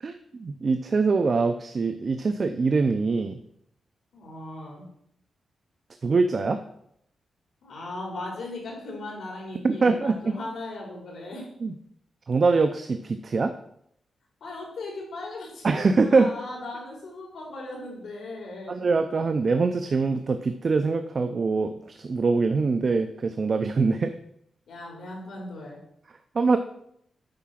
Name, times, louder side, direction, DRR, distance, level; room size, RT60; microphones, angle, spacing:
voice 1, 0.0-3.4 6.0-6.6 9.6-10.4 11.6-11.8 12.3-13.5 15.6-16.3 18.7-24.1 26.3-26.6, right 4 dB, 35° right, 8 dB, 0.4 m, -23 dB
voice 2, 4.1-4.9 7.6-11.5 14.4-18.8 24.7-25.8, left 2 dB, 85° left, -2 dB, 3.5 m, -38 dB
8.6 x 4.6 x 5.9 m, 0.71 s
wide cardioid pair, 170°, 0 cm